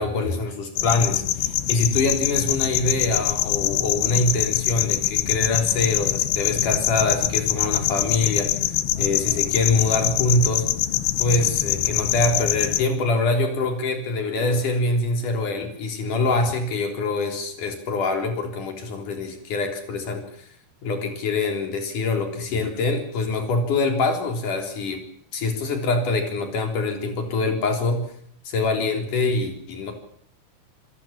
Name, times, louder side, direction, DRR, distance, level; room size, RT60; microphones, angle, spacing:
voice 1, 0.0-8.5 9.0-10.7 11.2-20.5 20.8-25.0 25.3-28.1 28.5-29.9, left 3 dB, 55° left, 5 dB, 5.0 m, -24 dB
sound 1, 0.8-12.8, left 12 dB, 75° left, 2.8 m, -24 dB
28.0 x 15.5 x 7.4 m, 0.65 s
omnidirectional pair, 4.5 m